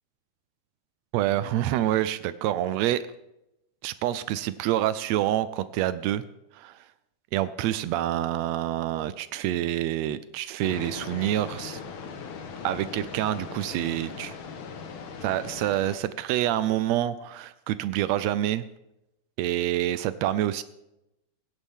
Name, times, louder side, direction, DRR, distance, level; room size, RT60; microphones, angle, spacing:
voice 1, 1.1-3.0 3.8-6.2 6.5-6.8 7.3-11.8 12.6-14.3 15.2-18.6 19.4-20.6, right 13 dB, 85° right, 14 dB, 1.5 m, -27 dB
sound 1, 10.6-16.0, left 5 dB, 60° left, 1.4 m, -39 dB
20.5 x 10.5 x 3.6 m, 0.86 s
omnidirectional pair, 3.7 m